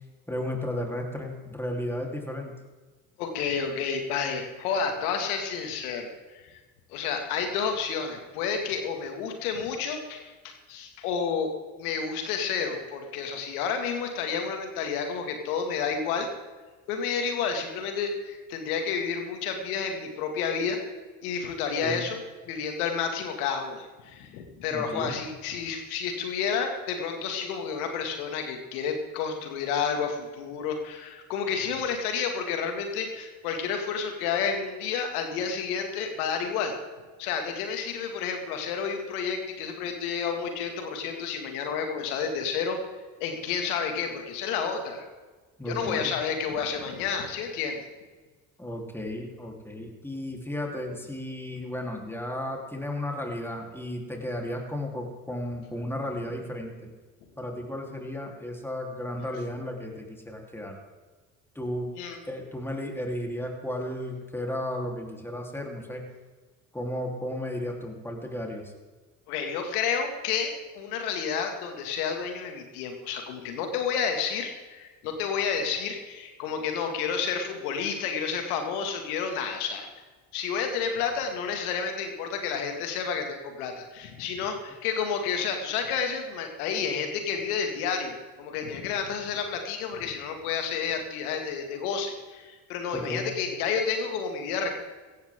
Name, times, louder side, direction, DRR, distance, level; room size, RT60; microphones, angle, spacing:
voice 1, 0.3-2.5 21.8-22.0 24.7-25.2 45.6-46.1 48.6-56.9 57.4-60.8 61.6-61.9 62.3-66.0 66.7-68.7 92.9-93.3, left 1 dB, 5° left, 0 dB, 3.8 m, -34 dB
voice 2, 3.2-6.6 6.9-11.5 11.8-16.3 16.9-20.8 21.2-22.2 22.4-36.7 37.2-42.8 43.2-45.0 45.6-47.8 62.0-62.2 69.3-79.9 80.3-94.7, left 6 dB, 80° left, 5 dB, 2.4 m, -30 dB
17.5 x 14.5 x 3.8 m, 1.3 s
hypercardioid pair, 60°, 43 cm